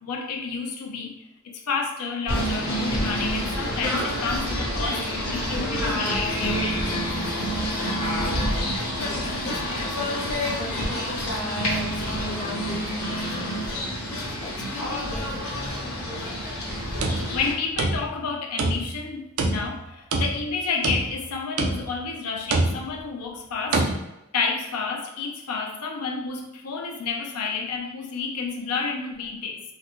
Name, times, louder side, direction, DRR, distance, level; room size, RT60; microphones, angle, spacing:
voice 1, 0.0-6.9 17.0-23.9 24.3-29.6, left 5 dB, 90° left, 2 dB, 0.6 m, -30 dB
Singing / Bird, 2.3-17.5, equal, 70° left, 1.0 m, -28 dB
voice 2, 9.0-13.7 14.3-15.7, left 3 dB, 35° left, 3 dB, 0.4 m, -39 dB
sound 1, 16.8-18.3 18.6-19.1 19.4-20.5 20.8-21.3 21.6-22.0 22.5-23.0 23.7-23.9, right 2 dB, 70° right, 0.5 m, -26 dB
3.8 x 2.2 x 2.9 m, 0.95 s
head